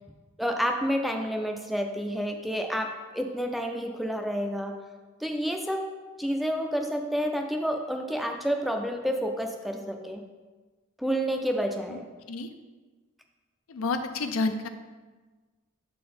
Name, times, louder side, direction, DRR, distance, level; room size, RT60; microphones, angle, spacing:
voice 1, 0.4-4.7 5.2-5.8 6.2-10.2 11.0-12.0, equal, ahead, 3 dB, 0.3 m, -29 dB
voice 2, 13.7-14.7, left 3 dB, 70° left, 8 dB, 0.5 m, -29 dB
6.6 x 3.8 x 4.2 m, 1.3 s
head